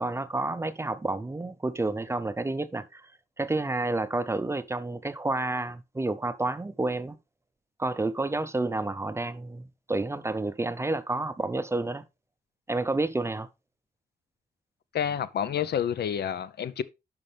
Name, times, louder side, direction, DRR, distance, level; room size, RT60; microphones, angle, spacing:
voice 1, 0.0-3.1 3.4-7.2 7.8-12.0 12.7-13.5, right 2 dB, 15° right, 0.6 m, -30 dB
voice 2, 14.9-16.8, left 9 dB, 70° left, 0.7 m, -29 dB
11.0 x 5.3 x 3.3 m
wide cardioid pair, 135°, 18 cm